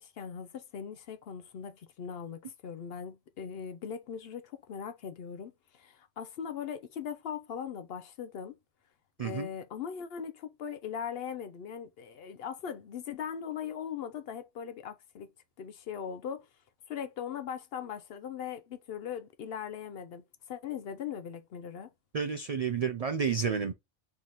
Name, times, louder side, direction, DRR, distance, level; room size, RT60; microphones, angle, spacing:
voice 1, 0.0-8.6 9.2-15.3 15.6-16.5 16.9-21.9, left 8 dB, 65° left, 0.7 m, -40 dB
voice 2, 22.1-23.7, right 6 dB, 75° right, 0.3 m, -30 dB
3.5 x 3.0 x 3.9 m
omnidirectional pair, 1.3 m